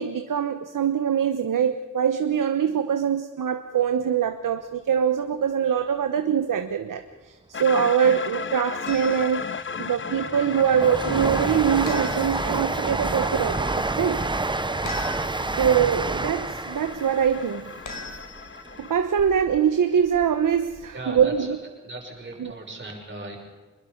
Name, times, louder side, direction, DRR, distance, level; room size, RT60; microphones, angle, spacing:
voice 1, 0.0-13.7 13.9-14.2 15.6-17.7 18.8-21.6 22.4-22.5, right 8 dB, 90° right, 8 dB, 1.1 m, -23 dB
sound 1, 7.5-19.0, left 5 dB, 40° left, 0.9 m, -36 dB
sound 2, 8.9-9.4 11.9-12.6 14.9-15.6 17.9-18.7, left 2 dB, 75° left, 5.3 m, -38 dB
Train, 9.4-19.6 20.0-20.9 21.2-21.3, right 3 dB, 15° right, 0.6 m, -29 dB
voice 2, 20.9-21.6 21.8-23.4, right 2 dB, 35° right, 0 dB, 6.5 m, -37 dB
26.0 x 21.5 x 5.3 m, 1.3 s
wide cardioid pair, 145°, 31 cm